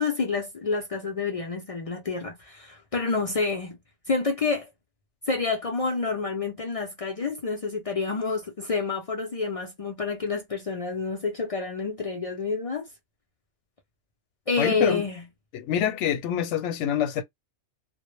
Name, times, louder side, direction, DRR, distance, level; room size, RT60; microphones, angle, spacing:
voice 1, 0.0-3.8 4.1-4.7 5.3-12.9 14.5-15.2, left 4 dB, 60° left, 0.3 m, -28 dB
voice 2, 14.6-15.0 15.5-17.2, left 10 dB, 80° left, 0.9 m, -26 dB
2.1 x 2.0 x 3.0 m
omnidirectional pair, 1.2 m